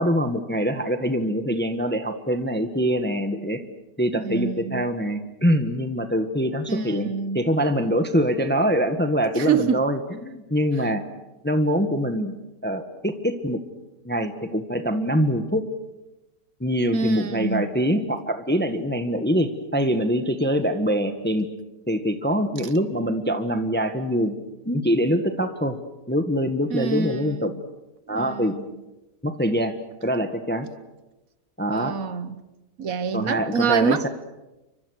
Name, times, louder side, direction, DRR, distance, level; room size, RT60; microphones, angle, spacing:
voice 1, 0.0-3.6 4.0-11.0 11.4-12.3 12.6-13.6 14.0-15.7 16.6-21.5 21.9-24.4 24.6-25.8 26.1-27.5 28.1-28.5 29.2-29.7 30.0-30.7 31.6-32.0 33.1-34.1, equal, 5° left, 1.4 m, -24 dB
voice 2, 4.1-4.8 6.7-7.4 9.4-9.9 16.9-17.7 26.7-27.6 28.1-28.7 31.7-32.4 32.8-34.1, right 6 dB, 60° right, 1.5 m, -26 dB
29.5 x 25.0 x 6.5 m
omnidirectional pair, 1.8 m